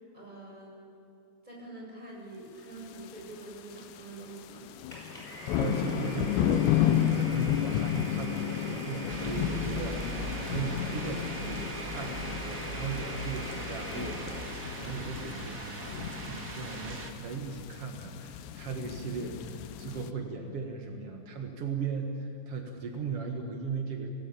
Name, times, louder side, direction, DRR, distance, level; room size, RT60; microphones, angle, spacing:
voice 1, 0.1-0.7 1.4-4.6, right 2 dB, 10° right, -3 dB, 6.9 m, -45 dB
sound 1, 3.0-3.3 3.7-4.0 4.4-20.1, left 11 dB, 80° left, 3.1 m, -32 dB
Domestic sounds home sounds, 4.9-14.9, equal, 10° left, 5.4 m, -42 dB
voice 2, 5.2-6.7 7.1-24.1, right 5 dB, 75° right, 3 dB, 1.3 m, -37 dB
sound 2, 9.1-17.1, right 3 dB, 50° right, 1.0 m, -40 dB
26.0 x 18.5 x 8.7 m, 2.7 s
omnidirectional pair, 5.1 m